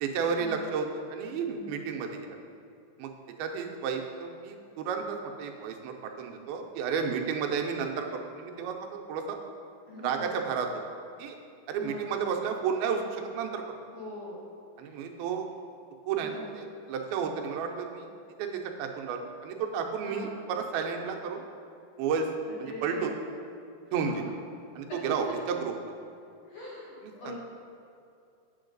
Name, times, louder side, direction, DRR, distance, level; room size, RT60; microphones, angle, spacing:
voice 1, 0.0-2.2 3.0-3.1 3.4-8.1 8.4-8.7 9.1-9.4 10.0-10.7 11.2-11.4 11.7-13.6 14.8-15.5 16.1-18.1 18.4-21.4 22.0-22.3 22.6-23.1 23.9-24.3 24.8-25.7, right 6 dB, 85° right, 3 dB, 2.6 m, -32 dB
voice 2, 9.9-10.4 11.7-12.3 13.9-14.5 14.8-15.0 16.2-16.5 20.0-20.5 22.4-23.1 23.9-24.3 24.9-25.0 26.5-27.3, left 1 dB, 55° left, -6 dB, 2.1 m, -42 dB
9.0 x 7.1 x 3.9 m, 2.5 s
omnidirectional pair, 4.2 m